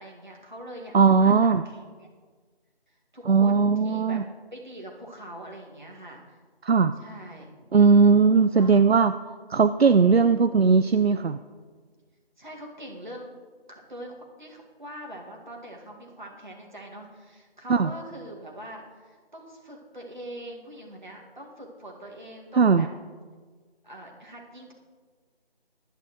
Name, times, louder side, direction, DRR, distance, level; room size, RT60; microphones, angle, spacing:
voice 1, 0.0-2.1 3.1-4.2 4.5-6.4 7.0-7.5 8.6-8.8 12.4-13.3 13.7-22.9 23.8-24.7, right 1 dB, 50° right, -1 dB, 2.1 m, -43 dB
voice 2, 0.9-1.6 3.3-4.2 6.6-6.9 7.7-9.1 9.5-11.4 17.7-17.9 22.6-22.9, right 5 dB, 75° right, 11 dB, 0.5 m, -18 dB
15.0 x 11.0 x 3.1 m, 1.5 s
figure-of-eight pair, 165°, 31 cm